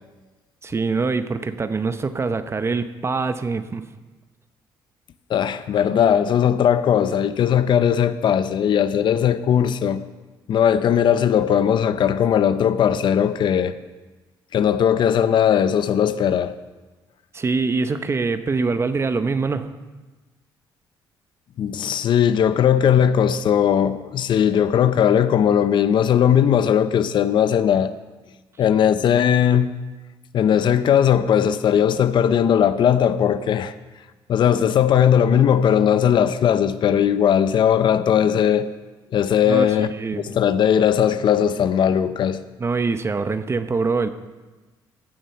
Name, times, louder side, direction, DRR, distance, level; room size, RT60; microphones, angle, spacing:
voice 1, 0.6-3.8 17.3-19.7 39.4-40.2 42.6-44.1, right 4 dB, 30° right, 0.8 m, -24 dB
voice 2, 5.3-10.0 10.5-13.7 14.5-16.5 21.6-27.9 28.6-29.8 30.3-33.7 34.3-38.7 39.1-39.9 40.2-42.4, left 9 dB, 60° left, 0.6 m, -18 dB
15.5 x 7.3 x 5.7 m
cardioid pair, 90°, 9 cm